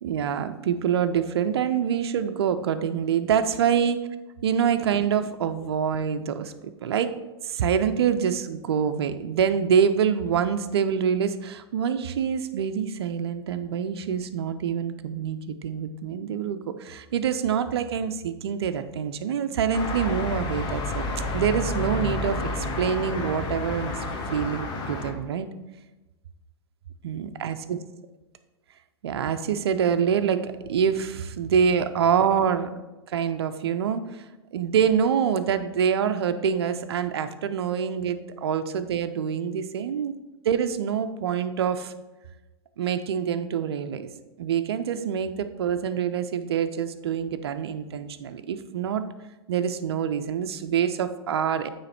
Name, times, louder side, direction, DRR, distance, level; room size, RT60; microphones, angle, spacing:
voice 1, 0.0-4.0 4.4-6.5 6.8-7.1 7.4-21.1 21.3-23.9 24.3-25.5 27.0-27.8 29.0-32.7 33.1-34.2 34.5-40.1 40.5-41.9 42.8-44.1 44.4-49.0 49.5-51.7, right 7 dB, 70° right, 10 dB, 0.5 m, -26 dB
sound 1, 19.7-25.1, left 2 dB, 30° left, 1.0 m, -30 dB
8.8 x 3.1 x 4.2 m, 1.1 s
hypercardioid pair, 100°, 14 cm